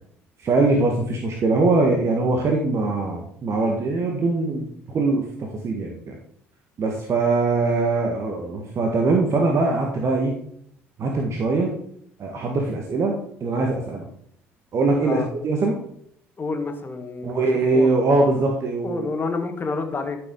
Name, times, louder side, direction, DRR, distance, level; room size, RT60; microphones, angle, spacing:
voice 1, 0.4-6.2 6.8-10.4 11.0-11.7 12.2-14.1 14.7-15.8 17.2-19.1, right 3 dB, 40° right, 1 dB, 1.4 m, -22 dB
voice 2, 16.4-17.5 17.7-17.9 18.8-20.2, left 3 dB, 30° left, 6 dB, 1.7 m, -28 dB
12.0 x 6.2 x 3.7 m, 0.69 s
figure-of-eight pair, 55°, 7 cm